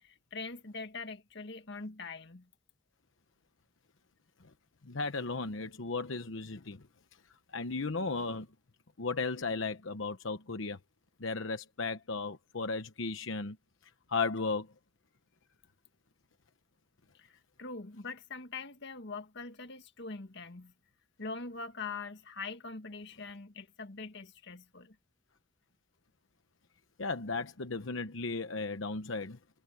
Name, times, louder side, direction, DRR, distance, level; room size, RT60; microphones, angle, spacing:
voice 1, 0.0-2.5 17.2-20.7 21.2-25.0, left 4 dB, 65° left, 1.7 m, -43 dB
voice 2, 4.8-6.8 7.5-8.5 9.0-10.8 11.2-13.6 14.1-14.7 27.0-29.4, left 3 dB, 85° left, 1.0 m, -35 dB
head